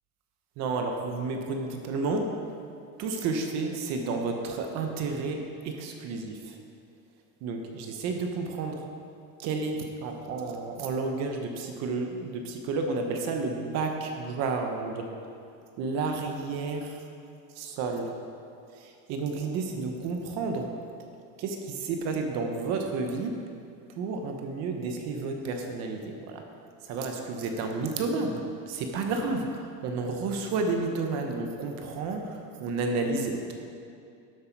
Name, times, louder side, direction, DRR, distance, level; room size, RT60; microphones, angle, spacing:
voice 1, 0.6-2.3 3.0-5.4 5.6-6.6 7.4-8.8 9.4-15.0 15.8-17.0 17.5-18.1 18.7-20.7 21.4-23.3 24.0-26.4 26.8-33.5, right 3 dB, 35° right, 4 dB, 0.9 m, -31 dB
12.0 x 8.0 x 4.6 m, 2.5 s
cardioid pair, 180°, 44 cm